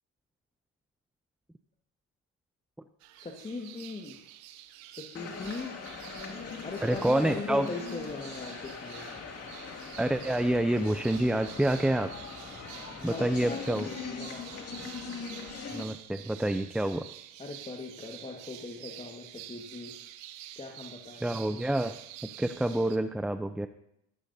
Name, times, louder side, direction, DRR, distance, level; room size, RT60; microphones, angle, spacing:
sound 1, 3.0-23.0, right 13 dB, 90° right, 1.0 m, -48 dB
voice 1, 3.2-4.2 4.9-5.8 6.6-9.2 13.0-13.6 13.9-14.7 17.4-20.0 20.6-21.3, left 3 dB, 20° left, 2 dB, 1.7 m, -40 dB
sound 2, 5.1-15.8, left 5 dB, 45° left, 2.5 m, -41 dB
voice 2, 6.8-7.7 10.0-12.1 13.0-13.9 15.7-17.0 21.2-22.0 22.4-23.7, right 1 dB, 5° right, 9 dB, 0.6 m, -27 dB
15.5 x 15.5 x 2.8 m, 0.76 s
supercardioid pair, 85°, 32 cm